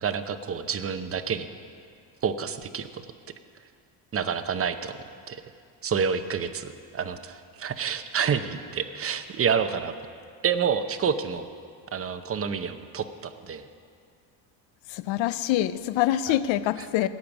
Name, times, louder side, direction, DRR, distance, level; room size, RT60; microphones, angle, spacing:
voice 1, 0.0-1.5 2.2-3.0 4.1-4.9 5.3-5.4 5.8-9.9 10.4-11.5 11.9-13.7 16.3-16.4, right 7 dB, 30° right, 10 dB, 0.7 m, -28 dB
voice 2, 14.9-17.1, left 13 dB, 65° left, 15 dB, 0.7 m, -25 dB
18.0 x 8.4 x 6.0 m, 2.3 s
cardioid pair, 115°, 49 cm